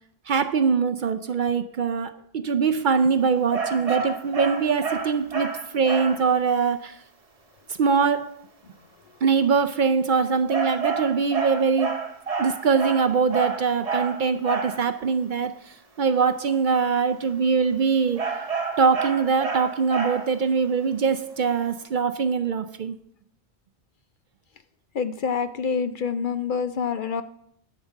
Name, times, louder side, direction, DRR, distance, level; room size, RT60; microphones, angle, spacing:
voice 1, 0.3-7.0 7.8-8.4 9.2-12.1 12.4-15.6 16.0-18.3 18.8-22.9, right 5 dB, 55° right, 11 dB, 0.6 m, -23 dB
sound 1, 3.5-6.3 10.5-14.8 18.2-20.4, right 4 dB, 35° right, 1.0 m, -29 dB
voice 2, 25.0-27.2, left 6 dB, 60° left, 11 dB, 0.6 m, -26 dB
10.5 x 5.1 x 7.1 m, 0.69 s
omnidirectional pair, 1.1 m